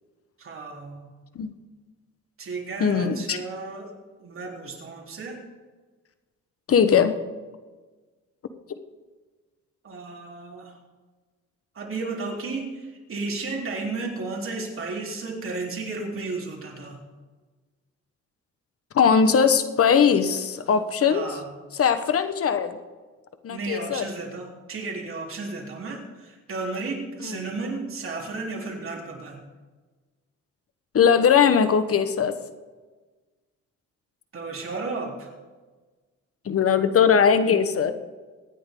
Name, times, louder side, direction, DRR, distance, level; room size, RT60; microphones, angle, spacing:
voice 1, 0.4-1.1 2.4-3.9 4.2-5.4 9.8-10.7 11.7-17.0 21.1-21.5 23.5-29.4 34.3-35.3, right 3 dB, 45° right, -1 dB, 4.0 m, -33 dB
voice 2, 2.8-3.4 6.7-7.2 18.9-21.3 21.7-22.8 23.4-24.1 27.2-27.4 30.9-32.4 36.4-37.9, left 7 dB, 50° left, 10 dB, 1.3 m, -20 dB
24.5 x 10.0 x 3.9 m, 1.3 s
cardioid pair, 90°, 30 cm